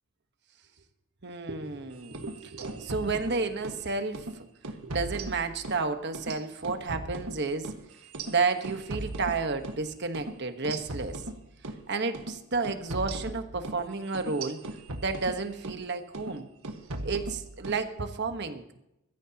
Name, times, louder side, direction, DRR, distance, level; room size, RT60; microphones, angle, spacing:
voice 1, 1.2-4.5 4.8-7.7 8.3-11.2 11.9-14.6 15.0-16.5 17.0-18.7, right 4 dB, 50° right, 7 dB, 1.2 m, -31 dB
sound 1, 2.0-3.8 4.1-4.3 4.6-5.8 6.1-9.8 10.1-10.3 10.6-11.8 12.1-12.3 12.6-15.8 16.1-16.4 16.6-17.8, right 2 dB, 80° right, 1.6 m, -38 dB
21.5 x 13.5 x 2.9 m, 0.85 s
head